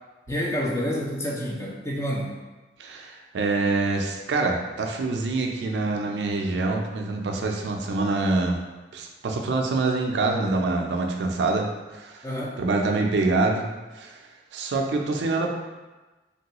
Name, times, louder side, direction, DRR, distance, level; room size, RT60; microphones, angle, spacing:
voice 1, 0.3-2.3 12.2-12.6, equal, 15° left, -3 dB, 0.4 m, -28 dB
voice 2, 2.8-8.6 8.9-12.3 12.6-13.7 13.9-14.2 14.5-15.5, right 3 dB, 80° right, 2 dB, 0.4 m, -25 dB
3.2 x 2.3 x 2.8 m, 1.2 s
head